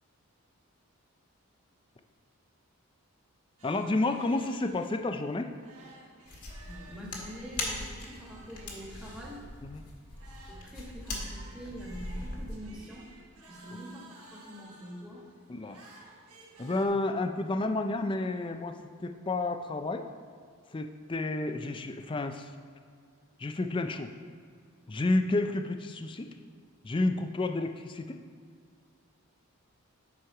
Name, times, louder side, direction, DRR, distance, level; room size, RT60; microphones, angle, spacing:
voice 1, 3.6-5.5 9.6-9.8 15.5-15.8 16.6-20.1 20.7-22.5 23.4-24.1 24.9-26.3 26.8-28.2, left 2 dB, 20° left, 7 dB, 0.4 m, -30 dB
sound 1, 3.6-16.9, right 2 dB, 85° right, 1.6 m, -54 dB
sound 2, 6.3-12.6, left 2 dB, 90° left, 1.8 m, -40 dB
voice 2, 6.6-9.4 10.5-13.1 13.5-15.2, equal, 5° right, -5 dB, 1.4 m, -45 dB
9.3 x 6.2 x 4.7 m, 2.1 s
head